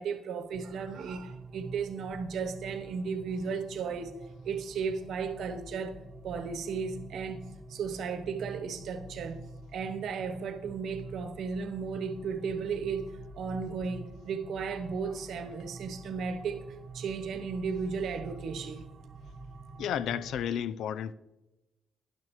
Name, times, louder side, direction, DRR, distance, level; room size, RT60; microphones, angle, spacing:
voice 1, 0.0-4.1 4.4-5.9 6.2-9.4 9.7-13.1 13.3-16.6 16.9-18.9, right 5 dB, 70° right, 1.0 m, -35 dB
sound 1, 0.5-20.4, right 3 dB, 45° right, 1.1 m, -47 dB
voice 2, 19.8-21.1, left 9 dB, 75° left, 0.3 m, -32 dB
12.0 x 10.5 x 3.1 m
cardioid pair, 90°, 0 cm